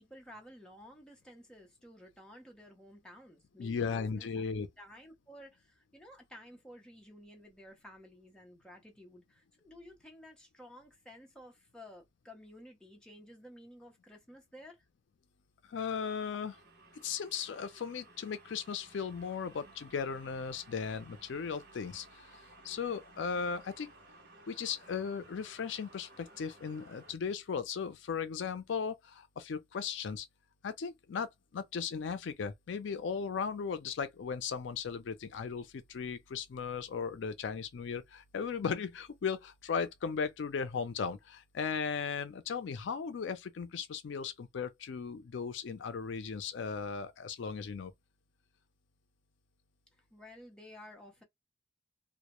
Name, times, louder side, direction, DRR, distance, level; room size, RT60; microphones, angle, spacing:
voice 1, 0.0-3.9 4.1-4.4 4.8-14.9 50.0-51.2, left 1 dB, 5° left, 0.6 m, -53 dB
voice 2, 3.6-4.7 15.6-16.6 17.0-22.3 22.6-23.9 24.5-30.3 30.6-47.9, left 6 dB, 70° left, 0.4 m, -37 dB
sound 1, 16.2-27.1, right 2 dB, 55° right, 0.8 m, -57 dB
2.1 x 2.0 x 2.9 m
head